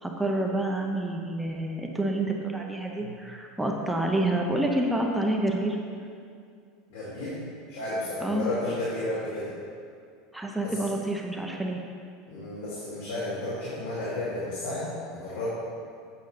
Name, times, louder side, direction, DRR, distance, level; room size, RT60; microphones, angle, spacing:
voice 1, 0.0-5.8 8.2-8.5 10.3-11.8, right 1 dB, 5° right, 0 dB, 0.6 m, -28 dB
voice 2, 6.9-7.4 7.7-9.5 10.6-10.8 12.3-15.5, left 2 dB, 90° left, -8 dB, 2.4 m, -32 dB
8.5 x 5.4 x 6.6 m, 2.3 s
supercardioid pair, 170°, 0 cm